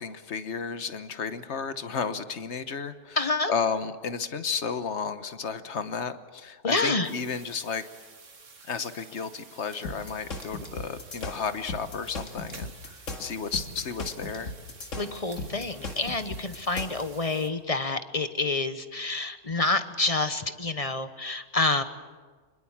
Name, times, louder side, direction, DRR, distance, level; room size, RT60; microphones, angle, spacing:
voice 1, 0.0-3.2 3.5-7.8 8.7-14.5, left 6 dB, 65° left, 11 dB, 1.3 m, -33 dB
voice 2, 3.2-3.5 6.6-7.1 15.0-21.8, left 3 dB, 30° left, 11 dB, 1.0 m, -28 dB
sound 1, 7.0-17.5, right 4 dB, 75° right, 2.1 m, -50 dB
sound 2, 9.8-17.0, left 2 dB, 80° left, 2.4 m, -37 dB
25.0 x 21.5 x 7.3 m, 1.5 s
omnidirectional pair, 1.3 m